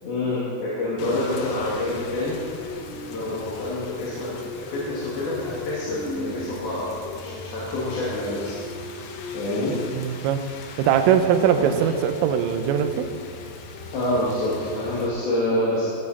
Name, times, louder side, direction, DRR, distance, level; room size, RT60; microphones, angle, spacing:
voice 1, 0.0-6.9 7.1-8.6 9.3-9.8 11.6-11.7 13.9-15.9, left 1 dB, 55° left, -8 dB, 3.8 m, -27 dB
Rain, 1.0-15.1, left 3 dB, 85° left, 1.9 m, -37 dB
voice 2, 9.9-10.4 10.8-13.1, right 9 dB, 90° right, 8 dB, 3.4 m, -21 dB
17.0 x 12.5 x 4.2 m, 2.2 s
omnidirectional pair, 5.7 m